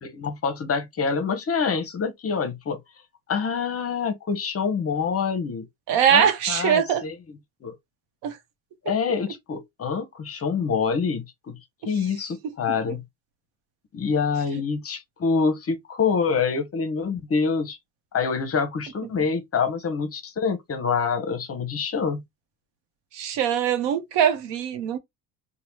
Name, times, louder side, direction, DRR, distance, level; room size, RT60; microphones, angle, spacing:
voice 1, 0.0-2.8 3.3-5.7 6.1-7.2 7.6-7.7 8.8-11.6 11.9-13.0 13.9-17.8 18.1-22.2, left 5 dB, 30° left, 0.8 m, -26 dB
voice 2, 5.9-7.0 8.2-8.4 23.1-25.0, right 8 dB, 65° right, 0.9 m, -22 dB
3.1 x 2.2 x 2.9 m
supercardioid pair, 85°, 47 cm